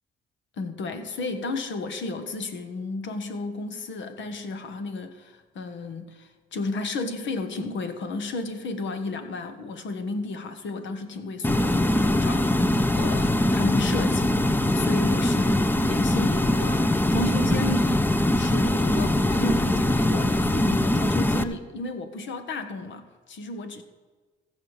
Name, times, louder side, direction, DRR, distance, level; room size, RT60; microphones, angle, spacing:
voice 1, 0.6-14.3 14.7-23.8, left 3 dB, 70° left, 9 dB, 1.5 m, -33 dB
sound 1, 11.4-21.4, left 1 dB, 10° left, 0.6 m, -22 dB
15.0 x 5.4 x 8.1 m, 1.4 s
cardioid pair, 90°, 20 cm